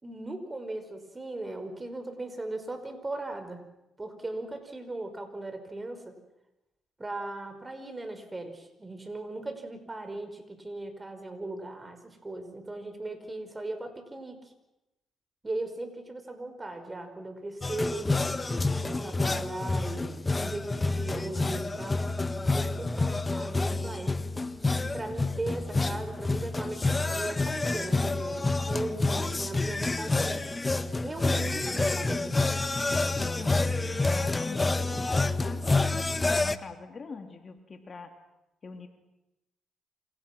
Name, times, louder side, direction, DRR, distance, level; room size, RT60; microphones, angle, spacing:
voice 1, 0.0-3.6 4.0-6.2 7.0-14.5 15.4-22.0 22.5-24.2 24.9-30.5 31.0-32.4, right 2 dB, 20° right, 7 dB, 5.5 m, -38 dB
sound 1, 17.6-36.6, left 3 dB, 20° left, 1.4 m, -28 dB
voice 2, 33.2-38.1 38.6-38.9, left 4 dB, 40° left, 5 dB, 3.1 m, -43 dB
29.5 x 27.0 x 6.2 m, 0.91 s
cardioid pair, 90°, 0 cm